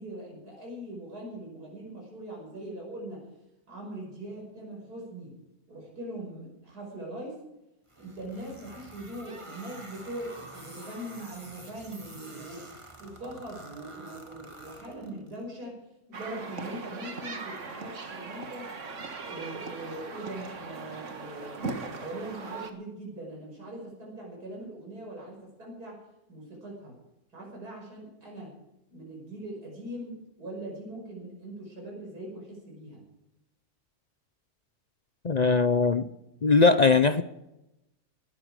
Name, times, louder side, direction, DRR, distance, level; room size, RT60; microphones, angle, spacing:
voice 1, 0.0-3.3 3.7-5.3 5.7-7.4 8.0-12.6 13.0-18.7 19.2-26.0 26.3-27.0 27.3-28.5 28.9-33.0, right 1 dB, 85° right, 6.3 m, -41 dB
sound 1, 7.9-15.4, right 2 dB, 20° right, 2.0 m, -48 dB
sound 2, 16.1-22.7, right 4 dB, 50° right, 1.9 m, -39 dB
voice 2, 35.2-36.1 36.4-37.2, left 4 dB, 45° left, 0.5 m, -20 dB
18.5 x 13.5 x 4.9 m
omnidirectional pair, 1.6 m